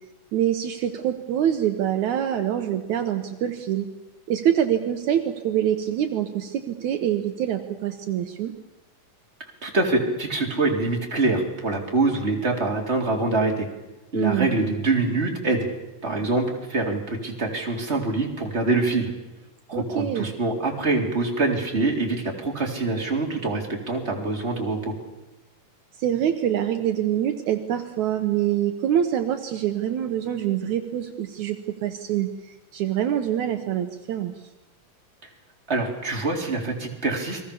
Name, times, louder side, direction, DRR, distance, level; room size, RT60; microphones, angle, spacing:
voice 1, 0.3-3.9 4.3-8.5 14.1-14.5 19.7-20.3 26.0-34.3, right 10 dB, 70° right, 6 dB, 2.4 m, -25 dB
voice 2, 9.6-13.7 14.1-15.7 16.0-19.1 19.7-24.9 35.7-37.4, right 3 dB, 20° right, 0 dB, 4.0 m, -25 dB
29.5 x 22.5 x 7.1 m, 1.0 s
omnidirectional pair, 3.6 m